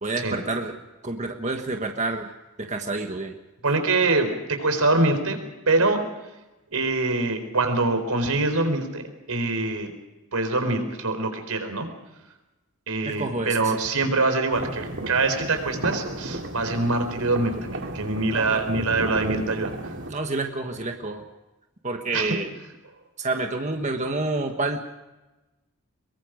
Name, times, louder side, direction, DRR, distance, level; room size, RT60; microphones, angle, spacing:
voice 1, 0.0-0.7 1.0-2.3 2.6-3.3 13.0-13.7 18.3-18.7 20.1-21.2 21.8-22.5 23.2-25.0, right 2 dB, 35° right, 4 dB, 1.4 m, -28 dB
voice 2, 3.6-5.4 5.7-6.0 6.7-9.9 10.3-11.9 12.9-19.7 22.1-22.3, right 3 dB, 85° right, 7 dB, 4.1 m, -24 dB
sound 1, 14.5-20.1, right 1 dB, 55° right, 2.5 m, -34 dB
23.5 x 22.5 x 5.2 m, 1.1 s
head